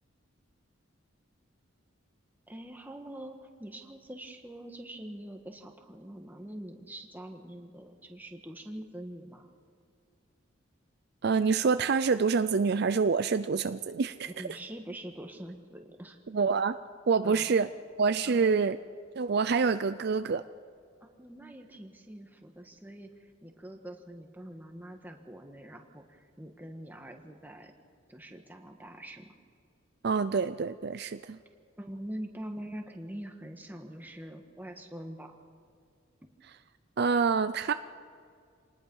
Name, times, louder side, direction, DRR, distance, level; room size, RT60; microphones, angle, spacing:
voice 1, 2.5-9.5 14.2-16.2 17.2-17.5 18.2-18.6 21.0-27.7 28.1-29.3 31.8-35.4 36.2-36.3, right 1 dB, 10° right, 3 dB, 1.6 m, -44 dB
voice 2, 11.2-14.5 16.3-16.7 17.1-17.7 18.0-18.8 19.2-20.4 30.0-31.4 37.0-37.7, right 5 dB, 55° right, 11 dB, 0.5 m, -26 dB
26.5 x 19.5 x 5.5 m, 2.3 s
head